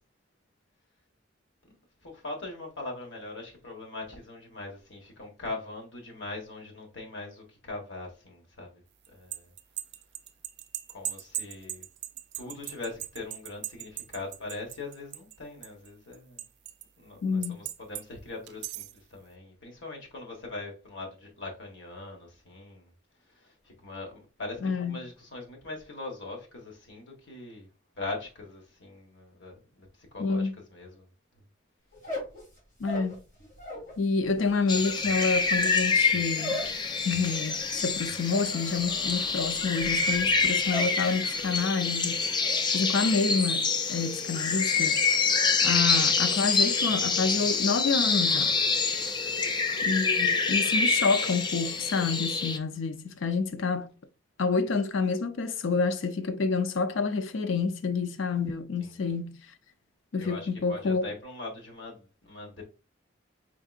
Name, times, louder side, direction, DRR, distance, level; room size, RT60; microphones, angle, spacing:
voice 1, 2.0-8.8 9.1-9.5 10.9-11.9 12.3-16.4 17.0-22.9 23.3-27.7 28.0-31.1 40.2-40.3 45.6-45.7 49.2-49.5 58.8-58.9 60.2-62.6, left 2 dB, 65° left, 1.4 m, -41 dB
sound 1, 9.1-15.4 15.6-16.8 17.4-18.0 18.5-19.0, right 12 dB, 55° right, 0.4 m, -38 dB
voice 2, 17.2-17.6 24.6-25.0 30.2-30.5 32.8-33.2 34.0-36.6 37.1-42.3 42.7-45.0 45.6-48.5 49.8-53.9 54.4-59.4 60.1-61.1, left 4 dB, 80° left, 0.5 m, -28 dB
sound 2, 31.9-34.0 34.2-41.0 41.3-41.8 42.1-42.6, equal, 40° left, 2.1 m, -39 dB
sound 3, 34.7-52.6, left 4 dB, 20° left, 0.3 m, -26 dB
4.7 x 3.6 x 2.4 m
head